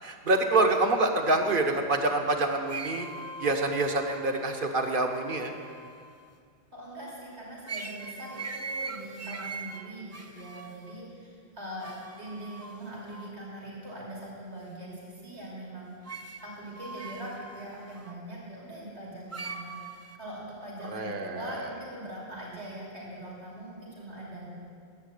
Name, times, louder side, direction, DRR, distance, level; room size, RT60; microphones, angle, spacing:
voice 1, 0.0-3.1 3.4-5.5 20.9-21.7, right 2 dB, 55° right, 4 dB, 1.2 m, -26 dB
sound 1, 2.7-6.3 7.7-11.0 11.8-13.3 16.1-18.1 19.3-20.2, right 3 dB, 25° right, 0.3 m, -41 dB
voice 2, 6.7-24.6, right 1 dB, 80° right, -5 dB, 3.2 m, -42 dB
10.5 x 8.2 x 8.2 m, 2.2 s
omnidirectional pair, 1.1 m